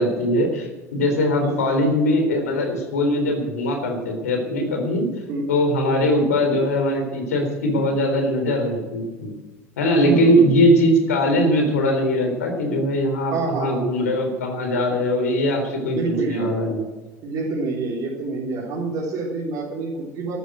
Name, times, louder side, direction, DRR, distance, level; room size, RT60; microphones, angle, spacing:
voice 1, 0.0-5.1 5.5-9.3 9.8-16.8, equal, 75° left, 4 dB, 3.9 m, -21 dB
voice 2, 10.0-10.5 13.3-13.9 15.9-16.5 17.2-20.4, right 3 dB, 50° right, -5 dB, 4.0 m, -26 dB
13.5 x 12.5 x 8.1 m, 1.2 s
figure-of-eight pair, 70°, 8 cm